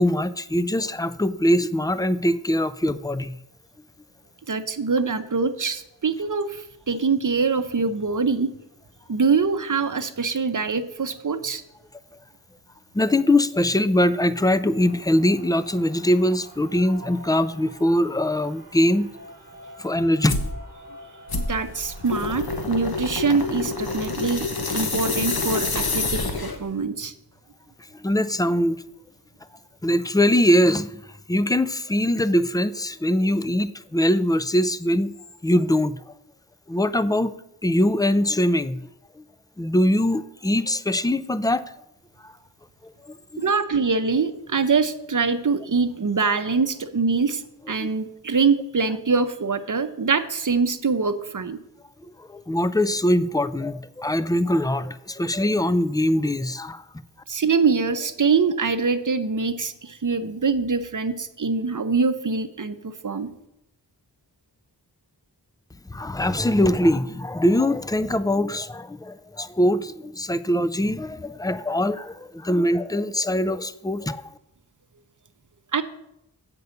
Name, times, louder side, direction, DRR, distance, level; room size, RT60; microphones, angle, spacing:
voice 1, 0.0-3.4 12.9-19.1 19.8-20.4 27.9-28.8 29.8-31.0 31.3-35.2 35.4-36.0 36.7-38.8 39.6-41.6 42.2-42.3 42.8-43.4 47.8-47.9 52.0-56.8 65.9-74.2, left 1 dB, 10° left, 15 dB, 0.4 m, -22 dB
voice 2, 4.5-8.5 9.1-11.6 21.3-24.5 24.7-27.1 43.4-51.6 57.3-63.3 75.7-75.8, right 4 dB, 50° right, 11 dB, 0.7 m, -24 dB
sound 1, 14.8-24.1, right 1 dB, 20° right, 2.0 m, -46 dB
sound 2, 20.2-20.5 21.3-26.7, left 3 dB, 60° left, 1.1 m, -27 dB
8.0 x 5.4 x 6.9 m, 0.84 s
wide cardioid pair, 50°, 42 cm